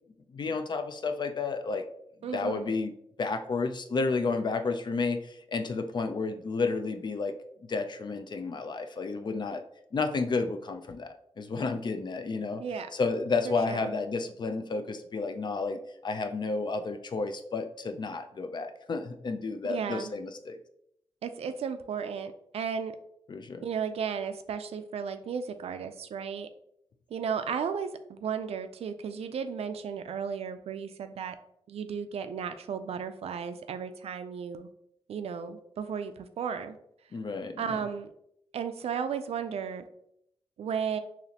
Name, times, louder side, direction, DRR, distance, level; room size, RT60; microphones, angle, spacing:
voice 1, 0.3-1.8 2.3-2.9 3.2-7.3 7.7-9.6 9.9-12.6 12.9-20.6 23.3-23.6 37.1-37.8, left 4 dB, 45° left, 7 dB, 0.4 m, -31 dB
voice 2, 2.2-2.7 12.6-12.9 13.5-13.9 19.6-20.1 21.2-22.9 23.6-26.5 27.1-31.4 31.7-34.7 35.1-36.8 37.6-38.1 38.5-39.8 40.6-41.0, right 7 dB, 85° right, 10 dB, 0.4 m, -34 dB
4.0 x 2.9 x 2.8 m, 0.73 s
wide cardioid pair, 105°, 10 cm